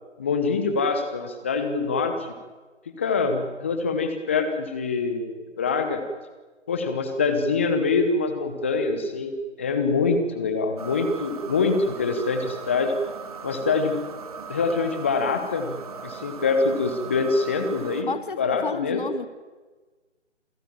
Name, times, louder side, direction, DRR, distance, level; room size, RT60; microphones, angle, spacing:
voice 1, 0.2-2.3 3.0-5.3 5.6-6.0 6.7-9.3 9.6-12.9 13.4-14.0 14.5-18.1 18.4-19.0, left 4 dB, 10° left, 7 dB, 0.9 m, -24 dB
sound 1, 10.8-18.0, right 5 dB, 30° right, 1.9 m, -39 dB
voice 2, 18.1-19.3, left 5 dB, 45° left, 13 dB, 1.3 m, -31 dB
27.5 x 15.0 x 8.9 m, 1.3 s
figure-of-eight pair, 155°, 36 cm